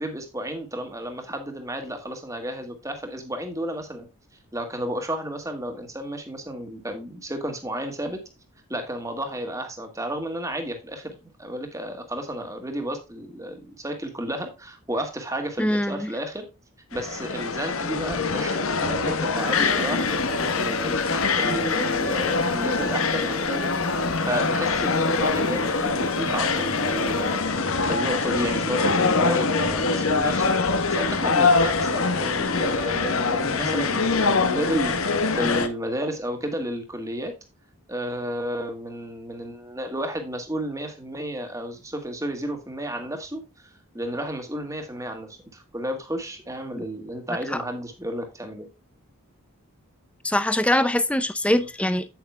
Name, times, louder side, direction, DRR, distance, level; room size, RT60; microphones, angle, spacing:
voice 1, 0.0-4.1 4.5-8.2 8.7-16.5 16.9-23.7 24.3-35.0 35.3-37.3 37.9-48.7, right 1 dB, 15° right, 1.8 m, -32 dB
voice 2, 15.6-16.1 50.2-52.1, left 1 dB, 5° left, 0.5 m, -22 dB
sound 1, 16.9-35.7, left 4 dB, 70° left, 1.1 m, -24 dB
sound 2, 19.4-27.7, left 2 dB, 25° left, 1.3 m, -40 dB
9.2 x 9.0 x 2.2 m
head